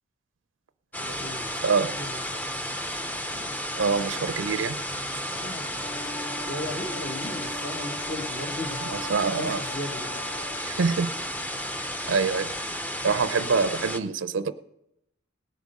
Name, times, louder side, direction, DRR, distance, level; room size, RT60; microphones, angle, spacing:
sound 1, 0.9-14.0, equal, 10° left, 0.6 m, -33 dB
voice 1, 1.0-2.4 3.3-3.6 5.3-5.8 6.4-8.8 9.3-10.1, left 1 dB, 40° left, 1.0 m, -37 dB
voice 2, 3.8-4.8 9.1-9.6 10.6-11.1 12.1-12.5 13.0-14.5, right 5 dB, 70° right, 0.5 m, -25 dB
Wind instrument woodwind instrument, 5.8-10.7, left 2 dB, 65° left, 2.1 m, -41 dB
18.5 x 8.2 x 5.3 m
head